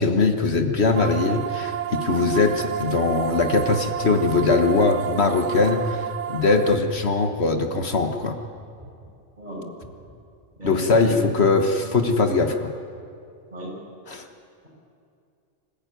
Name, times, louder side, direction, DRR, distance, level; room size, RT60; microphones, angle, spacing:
voice 1, 0.0-8.4 10.6-12.7 14.1-14.3, left 3 dB, 60° left, 6 dB, 1.6 m, -21 dB
sound 1, 0.9-6.8, right 10 dB, 85° right, 1.2 m, -30 dB
sound 2, 3.4-3.8 4.5-4.9 5.6-6.1 6.7-7.0 7.7-8.1 8.8-9.1 9.8-10.1, equal, 10° right, 6.8 m, -46 dB
voice 2, 10.6-11.2 13.5-13.7, equal, 40° right, -4 dB, 6.8 m, -34 dB
25.5 x 14.5 x 9.3 m, 2.4 s
omnidirectional pair, 1.2 m